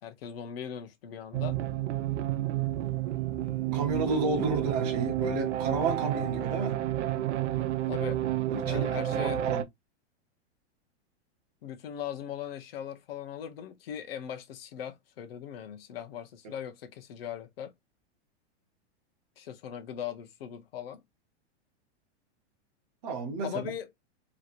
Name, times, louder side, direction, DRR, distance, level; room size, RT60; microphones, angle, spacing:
voice 1, 0.0-1.6 7.9-8.3 8.6-9.4 11.6-17.7 19.4-21.0 23.4-23.9, left 9 dB, 60° left, 0.9 m, -39 dB
sound 1, 1.3-9.6, right 13 dB, 80° right, 0.6 m, -30 dB
voice 2, 3.7-6.8 8.5-9.6 16.4-16.5 23.0-23.7, right 3 dB, 35° right, 0.8 m, -31 dB
3.1 x 2.9 x 2.4 m
supercardioid pair, 180°, 34 cm